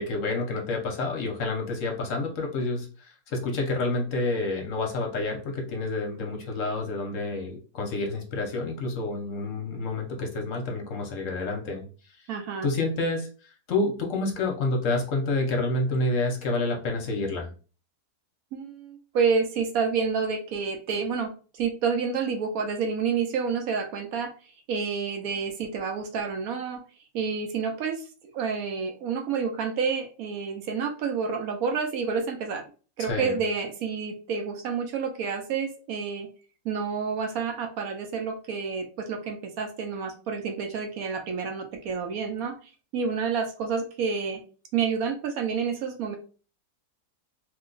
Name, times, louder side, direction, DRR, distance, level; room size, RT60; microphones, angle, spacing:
voice 1, 0.0-11.8 12.6-17.5 33.0-33.4, left 2 dB, 65° left, 2 dB, 1.0 m, -29 dB
voice 2, 12.3-12.7 18.5-24.3 24.7-26.8 27.1-28.1 28.3-32.6 33.0-36.3 36.6-42.6 42.9-44.4 44.7-46.2, right 5 dB, 75° right, 5 dB, 1.0 m, -29 dB
2.9 x 2.2 x 3.8 m, 0.37 s
omnidirectional pair, 1.6 m